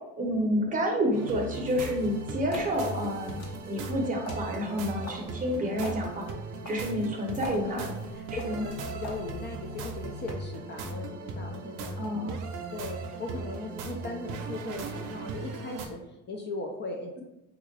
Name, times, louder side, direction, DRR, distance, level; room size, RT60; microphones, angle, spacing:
voice 1, 0.2-6.3 6.7-7.9 8.4-8.6 12.0-12.4, equal, 25° right, 1 dB, 0.7 m, -29 dB
sound 1, 1.1-15.9, right 3 dB, 65° right, 0.6 m, -38 dB
sound 2, 1.6-10.3, left 1 dB, 50° left, 1.0 m, -45 dB
voice 2, 7.6-12.5 12.7-17.2, left 2 dB, 35° left, 1 dB, 0.4 m, -39 dB
3.5 x 2.4 x 3.2 m, 0.93 s
cardioid pair, 130°, 33 cm